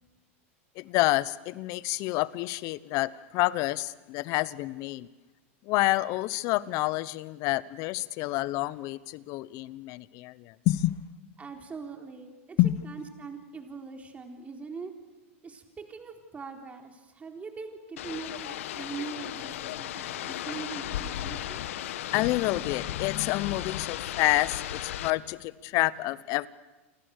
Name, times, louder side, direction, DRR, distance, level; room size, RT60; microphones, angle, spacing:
voice 1, 0.8-5.1 5.6-11.0 12.6-12.8 22.1-26.5, left 18 dB, 50° left, 18 dB, 1.0 m, -28 dB
voice 2, 11.4-12.6 12.8-14.9 15.4-21.6, right 5 dB, 20° right, 3 dB, 4.0 m, -42 dB
sound 1, 18.0-25.1, left 12 dB, 75° left, 1.3 m, -36 dB
29.0 x 25.0 x 6.7 m, 1.1 s
hypercardioid pair, 120°, 7 cm